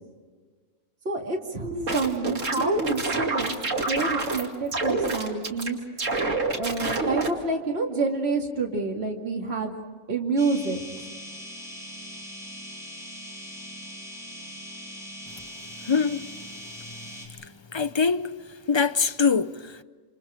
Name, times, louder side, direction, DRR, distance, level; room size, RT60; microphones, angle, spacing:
voice 1, 1.0-3.6 3.9-5.8 6.6-9.8 10.1-10.8, right 3 dB, 50° right, 2.8 m, -28 dB
sound 1, 1.6-4.5 4.7-5.7 6.0-7.3, right 2 dB, 70° right, 2.8 m, -27 dB
sound 2, 10.4-17.3, equal, ahead, 6.0 m, -41 dB
voice 2, 15.8-16.3 17.3-18.3 18.7-19.8, left 5 dB, 30° left, 0.5 m, -24 dB
28.0 x 27.5 x 5.1 m
omnidirectional pair, 1.4 m